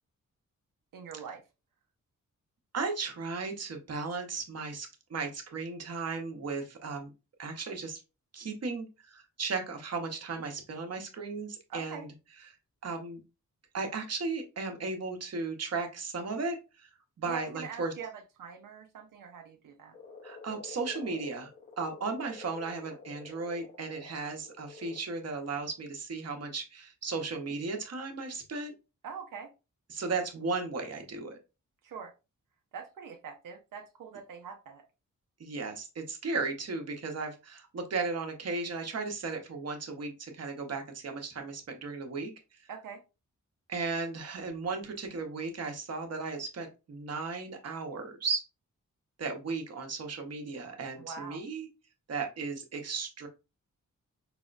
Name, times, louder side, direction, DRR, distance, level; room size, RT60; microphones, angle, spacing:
voice 1, 0.9-1.4 11.7-12.1 17.2-19.9 29.0-29.5 31.8-32.1 32.7-34.8 42.7-43.0 51.0-51.4, right 6 dB, 85° right, 4 dB, 0.5 m, -43 dB
voice 2, 2.7-7.1 7.4-8.0 8.3-12.1 12.8-13.2 13.7-16.9 17.2-17.9 20.2-21.5 21.8-28.7 29.9-31.4 35.4-42.3 42.6-42.7 43.7-48.4 49.2-51.7 52.1-53.3, right 4 dB, 55° right, 4 dB, 0.8 m, -35 dB
Frog, 19.9-25.0, left 4 dB, 30° left, 0.6 m, -49 dB
4.8 x 2.0 x 2.4 m, 0.28 s
wide cardioid pair, 110°, 31 cm